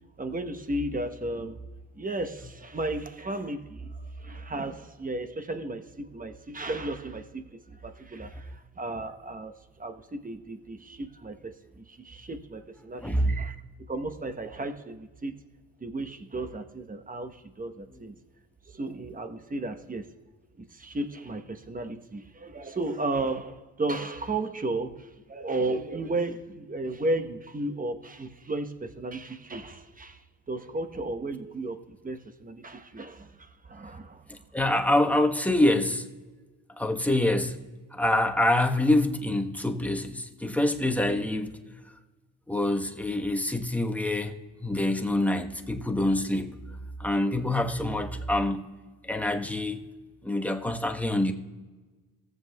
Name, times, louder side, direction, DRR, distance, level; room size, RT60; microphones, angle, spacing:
voice 1, 0.2-1.7 1.9-13.6 13.9-15.4 15.8-18.2 18.6-20.1 20.6-34.2 34.7-34.8, right 2 dB, 20° right, 1.1 m, -34 dB
voice 2, 13.0-13.4 17.9-18.0 34.3-36.1 36.8-37.6 37.9-41.8 42.5-44.3 44.6-46.6 47.0-48.7 49.0-49.8 50.2-51.3, left 1 dB, 5° left, 1.2 m, -26 dB
17.5 x 7.9 x 2.3 m
hypercardioid pair, 55°, 42 cm